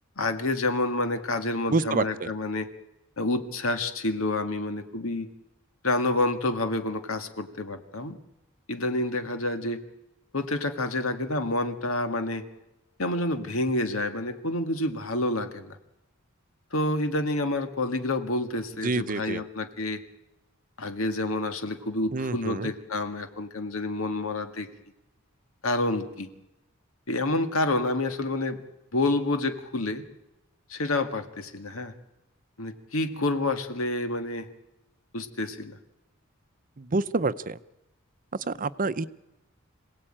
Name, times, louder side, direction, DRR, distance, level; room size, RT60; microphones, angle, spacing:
voice 1, 0.2-2.7 3.2-5.3 5.8-8.2 8.7-9.8 10.3-12.4 13.0-15.8 16.7-20.0 20.8-24.7 25.6-26.3 27.1-28.6 28.9-30.0 30.7-31.9 32.6-34.5 35.1-35.8, left 2 dB, 80° left, 8 dB, 1.9 m, -28 dB
voice 2, 1.7-2.3 18.8-19.4 22.1-22.7 36.8-37.6 38.3-39.1, right 3 dB, 40° right, 14 dB, 0.7 m, -27 dB
26.5 x 17.5 x 8.9 m, 0.96 s
head